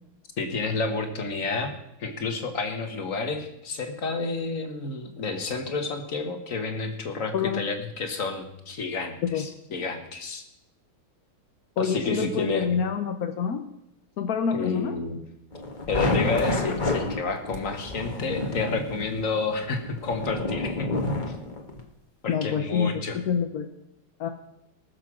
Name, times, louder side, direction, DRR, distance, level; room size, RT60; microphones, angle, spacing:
voice 1, 0.4-1.7 2.0-10.4 11.8-12.7 14.5-15.2 15.9-20.9 21.4-21.5 22.2-23.2, left 4 dB, 40° left, 6 dB, 1.8 m, -30 dB
voice 2, 7.3-7.6 9.3-9.4 11.8-13.6 14.2-15.0 22.3-23.7 24.2-24.3, left 7 dB, 60° left, 6 dB, 1.0 m, -27 dB
sound 1, 15.5-21.8, left 2 dB, 25° left, 1.3 m, -29 dB
19.5 x 7.1 x 6.1 m, 0.82 s
omnidirectional pair, 2.3 m